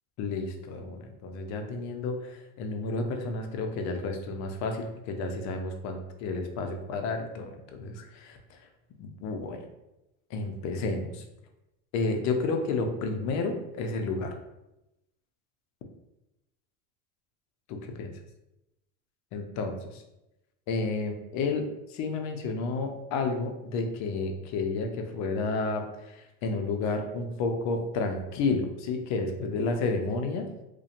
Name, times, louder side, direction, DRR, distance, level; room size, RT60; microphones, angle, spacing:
voice 1, 0.2-7.5 7.8-8.6 9.0-9.6 10.3-11.2 11.9-14.3 17.7-18.1 19.3-20.0 20.7-30.5, left 3 dB, 40° left, 5 dB, 0.5 m, -31 dB
2.7 x 2.1 x 2.5 m, 0.92 s
supercardioid pair, 115°, 43 cm